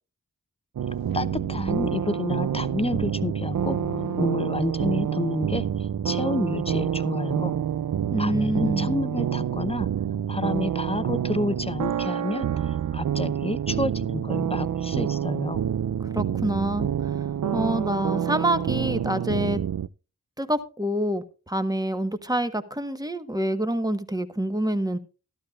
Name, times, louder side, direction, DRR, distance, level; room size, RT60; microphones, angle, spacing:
sound 1, 0.8-19.9, right 9 dB, 65° right, 0.5 m, -27 dB
sound 2, 0.9-5.1, left 8 dB, 90° left, 1.0 m, -44 dB
voice 1, 1.1-7.5 8.2-9.9 10.3-15.6, left 2 dB, 15° left, 13 dB, 0.7 m, -30 dB
voice 2, 8.1-8.9 16.1-17.1 17.5-19.6 20.4-25.0, right 1 dB, 10° right, 8 dB, 1.2 m, -27 dB
13.5 x 12.5 x 2.4 m, 0.32 s
wide cardioid pair, 55°, 35 cm